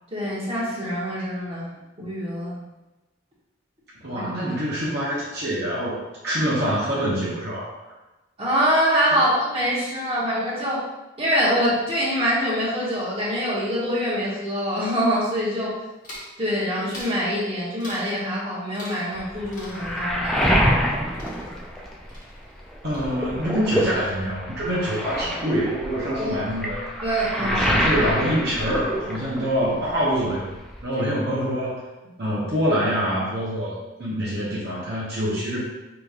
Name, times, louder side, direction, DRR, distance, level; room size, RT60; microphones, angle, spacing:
voice 1, 0.1-1.7 2.0-2.6 4.1-4.2 8.4-10.8 11.2-15.7 16.4-20.5 26.1-26.3 27.0-27.6 30.9-31.0, equal, 25° right, -8 dB, 1.0 m, -24 dB
voice 2, 4.0-7.7 9.1-9.2 22.8-26.8 27.4-30.5 30.8-31.8 32.2-35.6, equal, 50° right, -7 dB, 0.8 m, -25 dB
sound 1, 16.0-16.4 16.9-17.2 17.8-18.2 18.7-19.3 19.5-21.8 22.1-22.7 22.9-23.5, left 1 dB, 40° left, 1.0 m, -43 dB
Waves surf, 19.1-22.3 22.7-29.6 29.9-30.8, equal, ahead, 0.3 m, -26 dB
5.0 x 3.0 x 2.4 m, 1.1 s
head